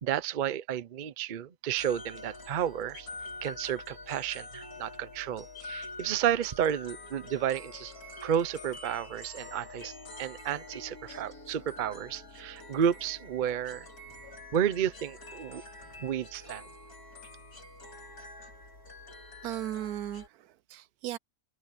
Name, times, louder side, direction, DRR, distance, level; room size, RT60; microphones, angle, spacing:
voice 1, 0.0-3.1 3.4-7.9 8.2-9.9 10.2-13.9 14.5-15.6 16.0-16.7, right 9 dB, 45° right, 0.6 m, -31 dB
sound 1, 1.8-20.3, left 2 dB, 75° left, 5.1 m, -46 dB
voice 2, 19.4-21.2, right 13 dB, 80° right, 1.1 m, -37 dB
omnidirectional pair, 1.6 m